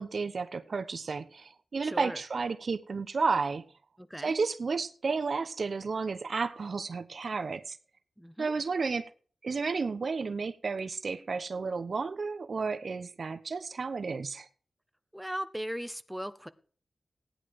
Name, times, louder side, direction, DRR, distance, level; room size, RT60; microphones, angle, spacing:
voice 1, 0.0-3.6 4.2-7.8 8.4-9.1 9.4-14.5, right 4 dB, 65° right, 1.0 m, -32 dB
voice 2, 1.8-2.2 4.0-4.4 8.2-8.5 15.1-16.5, equal, ahead, 1.4 m, -38 dB
16.0 x 10.5 x 4.9 m
cardioid pair, 65°, 0 cm